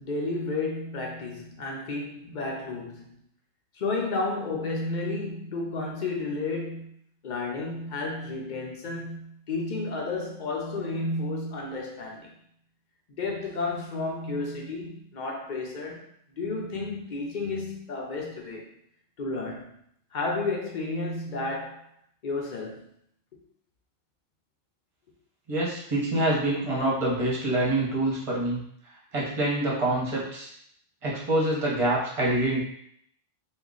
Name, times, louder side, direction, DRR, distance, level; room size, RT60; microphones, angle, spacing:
voice 1, 0.0-3.1 3.7-6.9 7.2-12.3 13.2-16.0 16.3-18.7 19.2-19.7 20.1-21.8 22.2-22.8, left 3 dB, 45° left, -1 dB, 0.7 m, -32 dB
voice 2, 25.5-28.6 29.1-30.5 31.0-32.6, right 1 dB, 30° right, -4 dB, 0.9 m, -26 dB
3.0 x 2.3 x 3.8 m, 0.69 s
omnidirectional pair, 1.3 m